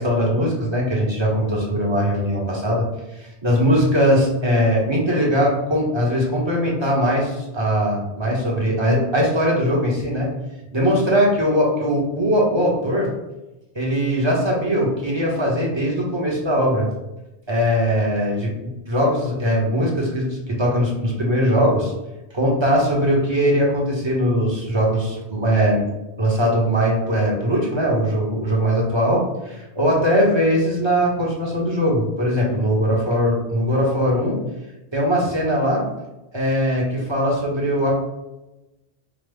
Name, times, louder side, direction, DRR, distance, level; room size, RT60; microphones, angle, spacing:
voice 1, 0.0-2.9 3.2-10.3 10.7-13.1 13.7-16.9 17.5-21.9 22.3-25.9 26.2-34.4 34.9-35.8 36.3-37.9, equal, 25° right, -3 dB, 0.9 m, -20 dB
4.9 x 2.0 x 3.4 m, 1.0 s
omnidirectional pair, 1.1 m